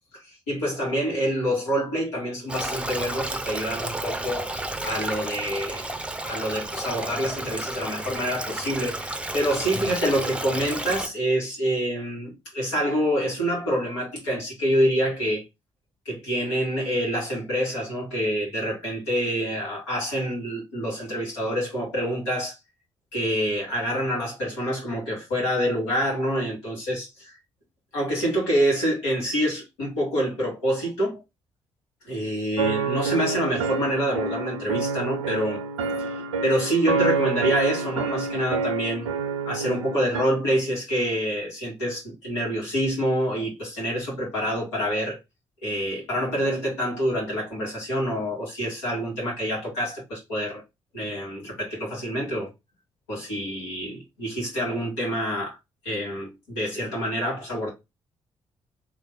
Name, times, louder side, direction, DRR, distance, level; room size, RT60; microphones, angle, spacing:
voice 1, 0.1-4.5 4.8-6.0 6.3-15.5 16.1-22.5 23.1-27.4 27.9-31.2 32.0-35.6 36.0-39.1 39.5-45.2 45.6-50.6 50.9-52.5 53.1-55.6 55.8-57.7, equal, 75° left, 2.0 m, -27 dB
Stream, 2.5-11.1, right 2 dB, 5° right, 0.7 m, -32 dB
sound 1, 32.6-40.2, right 5 dB, 80° right, 0.4 m, -28 dB
3.2 x 3.1 x 3.6 m
figure-of-eight pair, 40°, 15 cm